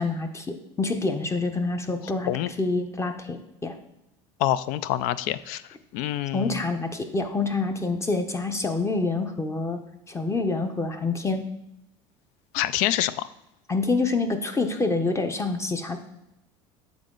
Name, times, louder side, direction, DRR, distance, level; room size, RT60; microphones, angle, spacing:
voice 1, 0.0-2.3 2.6-3.8 6.3-9.8 10.1-11.4 13.7-16.0, left 3 dB, 20° left, 6 dB, 0.8 m, -27 dB
voice 2, 4.4-5.6 5.9-6.6 12.5-13.3, left 13 dB, 65° left, 16 dB, 0.4 m, -26 dB
7.3 x 4.0 x 3.8 m, 0.85 s
supercardioid pair, 90°, 15 cm